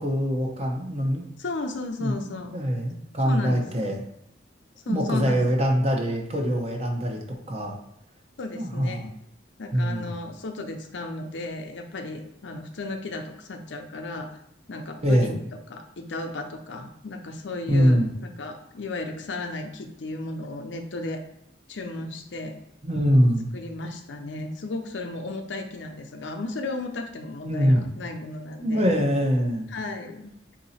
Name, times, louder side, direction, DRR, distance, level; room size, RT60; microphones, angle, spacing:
voice 1, 0.0-1.2 2.0-2.1 2.5-4.0 4.9-7.2 7.5-7.8 8.5-9.1 9.7-10.1 15.0-15.3 17.7-18.1 22.8-23.5 27.4-27.8 28.6-29.7, equal, 35° right, 1 dB, 0.8 m, -23 dB
voice 2, 1.4-2.5 3.2-3.9 4.9-5.5 8.4-9.1 9.6-14.3 14.7-21.2 21.7-22.6 23.5-28.9 29.7-30.3, left 2 dB, 75° left, 5 dB, 0.6 m, -34 dB
3.9 x 2.8 x 4.1 m, 0.79 s
head